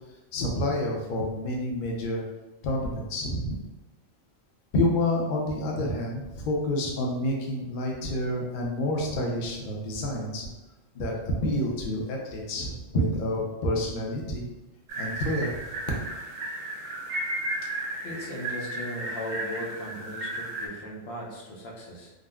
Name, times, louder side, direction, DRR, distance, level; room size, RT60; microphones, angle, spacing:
voice 1, 0.3-2.2 2.6-3.6 4.7-10.5 11.0-11.1 11.4-14.5 15.0-15.5, left 1 dB, 60° left, -1 dB, 0.6 m, -28 dB
sound 1, 14.9-20.7, right 1 dB, 85° right, 1.1 m, -34 dB
voice 2, 18.0-22.1, equal, 80° left, -3 dB, 1.0 m, -37 dB
3.7 x 2.1 x 2.3 m, 1.1 s
omnidirectional pair, 1.4 m